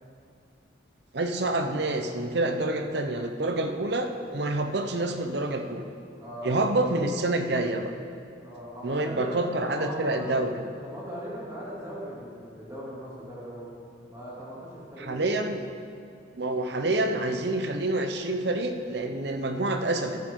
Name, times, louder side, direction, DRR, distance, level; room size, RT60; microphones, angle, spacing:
voice 1, 1.1-5.8 6.4-7.9 8.8-10.5 15.0-15.6 16.4-20.2, right 2 dB, 60° right, 6 dB, 0.8 m, -27 dB
voice 2, 6.2-6.8 8.4-10.3 10.8-13.7 14.1-15.2, equal, 20° right, -8 dB, 2.8 m, -39 dB
14.5 x 9.6 x 3.8 m, 2.4 s
head